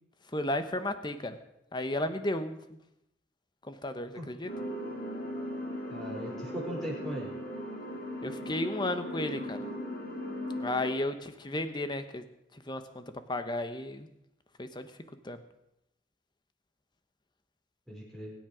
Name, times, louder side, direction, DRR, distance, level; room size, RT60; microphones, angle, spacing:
voice 1, 0.3-1.4 1.7-2.6 3.7-4.5 8.2-9.6 10.6-12.2 12.7-14.1 14.6-14.9 15.2-15.4, left 1 dB, 25° left, 9 dB, 1.0 m, -33 dB
sound 1, 4.5-10.9, equal, 50° left, 3.0 m, -38 dB
voice 2, 5.9-7.3 17.9-18.3, equal, ahead, -4 dB, 5.3 m, -38 dB
23.0 x 9.5 x 5.1 m, 0.83 s
head